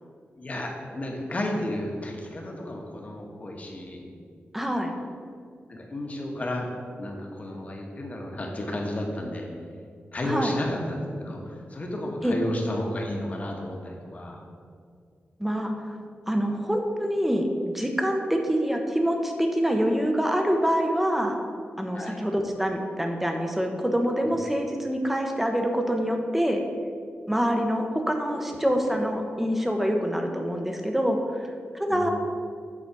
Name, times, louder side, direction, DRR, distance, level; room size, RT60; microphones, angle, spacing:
voice 1, 0.4-4.0 5.7-9.5 10.1-14.4 21.9-22.2 24.2-24.4 28.3-28.6 31.9-32.1, left 1 dB, 35° left, 0 dB, 1.3 m, -32 dB
voice 2, 4.5-4.9 10.2-10.6 12.2-12.3 15.4-15.7 16.3-21.4 21.8-26.6 27.3-31.5 31.7-32.1, equal, 5° right, 3 dB, 0.9 m, -25 dB
8.4 x 4.0 x 6.1 m, 2.2 s
wide cardioid pair, 120°, 4 cm